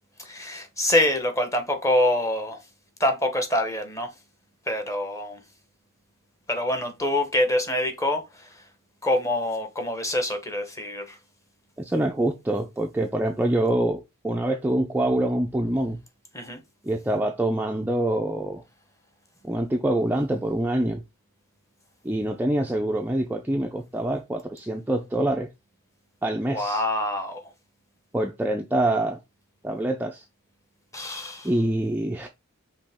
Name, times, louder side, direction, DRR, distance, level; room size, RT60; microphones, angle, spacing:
voice 1, 0.2-2.6 3.0-4.1 4.7-5.4 6.5-8.7 9.0-11.2 16.3-16.6 26.5-27.5 30.9-31.5, left 1 dB, 15° left, 0.9 m, -25 dB
voice 2, 11.8-16.0 16.8-18.6 19.4-21.0 22.0-25.5 26.2-26.8 28.1-29.2 29.6-30.3 31.4-32.3, right 1 dB, 10° right, 0.3 m, -25 dB
5.2 x 2.8 x 3.4 m
head